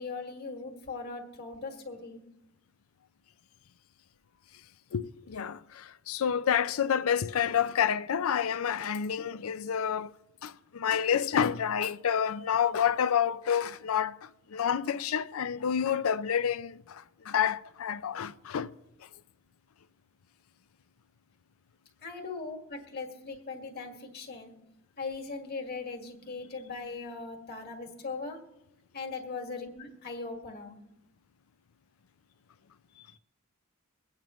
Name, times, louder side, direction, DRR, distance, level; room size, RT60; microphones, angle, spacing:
voice 1, 0.0-2.2 22.0-24.5 25.0-28.4 28.9-30.8 33.0-33.1, left 4 dB, 50° left, 1.9 m, -39 dB
voice 2, 4.9-10.1 10.4-18.7, left 8 dB, 80° left, 0.5 m, -29 dB
23.5 x 8.9 x 3.1 m
head